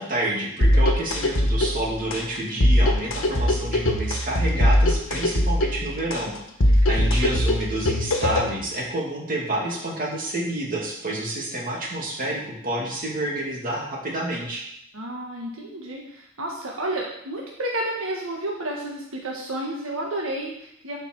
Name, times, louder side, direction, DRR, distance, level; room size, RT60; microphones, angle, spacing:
voice 1, 0.0-6.3 6.6-14.6, right 1 dB, 40° right, -3 dB, 2.7 m, -29 dB
sound 1, 0.6-8.6, left 1 dB, 90° left, 1.3 m, -21 dB
voice 2, 7.0-7.4 14.9-21.0, right 1 dB, 80° right, -2 dB, 1.4 m, -31 dB
11.5 x 5.2 x 4.7 m, 0.77 s
head